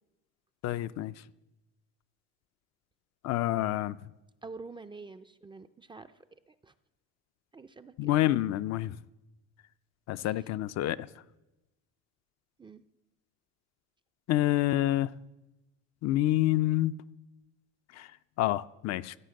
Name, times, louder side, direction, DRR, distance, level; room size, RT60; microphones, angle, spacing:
voice 1, 0.6-1.1 3.2-4.0 8.0-9.0 10.1-11.1 14.3-15.1 16.0-16.9 17.9-18.1 18.4-19.1, left 15 dB, 55° left, 0.4 m, -28 dB
voice 2, 4.4-6.1 6.5-6.7 7.5-7.9 10.2-10.3 12.6-12.8, right 4 dB, 15° right, 0.4 m, -47 dB
15.5 x 5.7 x 7.7 m
cardioid pair, 110°, 32 cm